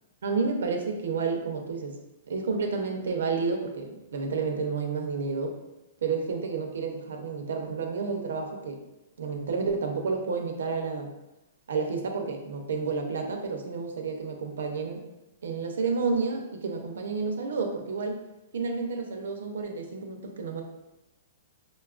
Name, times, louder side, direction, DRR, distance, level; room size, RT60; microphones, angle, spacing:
voice 1, 0.2-2.0 2.3-5.6 6.0-8.8 9.2-11.1 11.7-15.0 15.4-18.2 18.5-20.6, right 4 dB, 85° right, 3 dB, 0.6 m, -30 dB
5.1 x 2.3 x 2.4 m, 0.95 s
hypercardioid pair, 175°, 0 cm